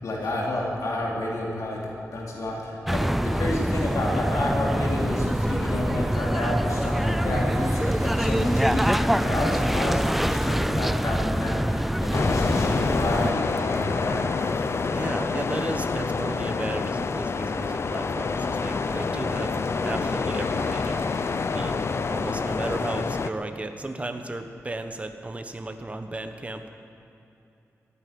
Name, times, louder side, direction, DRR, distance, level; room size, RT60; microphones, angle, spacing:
voice 1, 0.0-14.2, left 1 dB, 80° left, -3 dB, 2.8 m, -30 dB
sound 1, 2.9-13.3, equal, 5° right, 0.4 m, -25 dB
sound 2, 4.1-22.8, right 2 dB, 60° right, 2.5 m, -46 dB
sound 3, 12.1-23.3, left 4 dB, 50° left, 0.6 m, -27 dB
voice 2, 14.6-19.6 19.8-21.1 21.5-26.7, right 2 dB, 25° right, 6 dB, 1.2 m, -34 dB
15.0 x 10.5 x 9.6 m, 2.8 s
wide cardioid pair, 85°, 6 cm